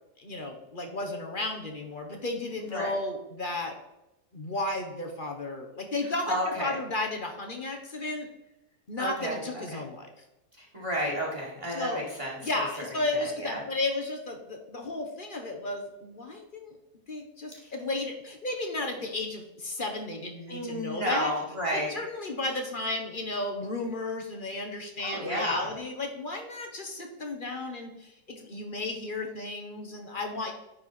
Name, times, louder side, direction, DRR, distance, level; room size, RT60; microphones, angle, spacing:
voice 1, 0.2-3.7 4.3-8.3 8.9-10.1 11.7-12.0 12.4-16.8 17.1-21.3 21.7-30.5, left 2 dB, 35° left, 3 dB, 1.1 m, -33 dB
voice 2, 6.3-6.8 9.0-9.8 10.6-12.5 13.2-13.6 17.5-17.7 20.5-21.9 25.0-25.7, equal, 20° right, -3 dB, 2.2 m, -32 dB
10.0 x 4.4 x 4.2 m, 0.93 s
omnidirectional pair, 1.7 m